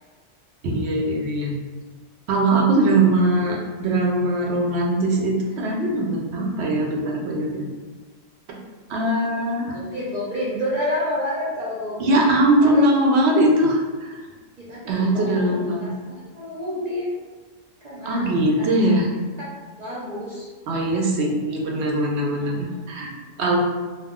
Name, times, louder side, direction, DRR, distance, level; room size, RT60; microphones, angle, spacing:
voice 1, 0.6-1.5 2.3-7.6 8.5-8.6 8.9-9.8 12.0-14.2 14.9-15.9 18.1-19.1 20.7-23.6, right 1 dB, 65° right, -1 dB, 0.7 m, -21 dB
voice 2, 9.7-12.2 12.6-12.8 14.6-17.1 17.8-18.3 18.6-18.8 19.4-20.5 22.4-22.7, left 1 dB, 80° right, -7 dB, 0.3 m, -30 dB
2.3 x 2.2 x 3.5 m, 1.3 s
omnidirectional pair, 1.4 m